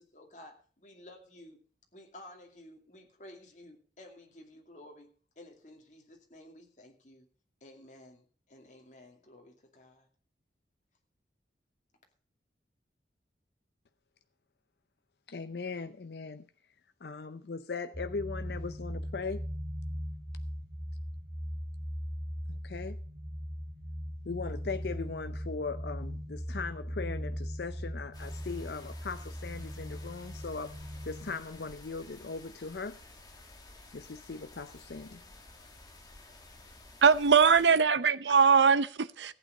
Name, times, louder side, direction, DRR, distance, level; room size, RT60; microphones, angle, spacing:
voice 1, 0.0-1.6 1.9-5.1 5.4-7.3 7.6-10.1, left 1 dB, 45° left, 2.5 m, -53 dB
voice 2, 15.3-16.5 17.0-19.4 22.5-23.0 24.3-30.7 31.0-33.0 33.9-35.2, left 4 dB, 70° left, 0.6 m, -39 dB
sound 1, 17.9-31.3, equal, 5° right, 2.9 m, -39 dB
sound 2, 28.1-37.7, left 2 dB, 20° left, 1.9 m, -53 dB
voice 3, 37.0-39.3, right 6 dB, 90° right, 0.7 m, -22 dB
14.5 x 8.9 x 5.4 m
head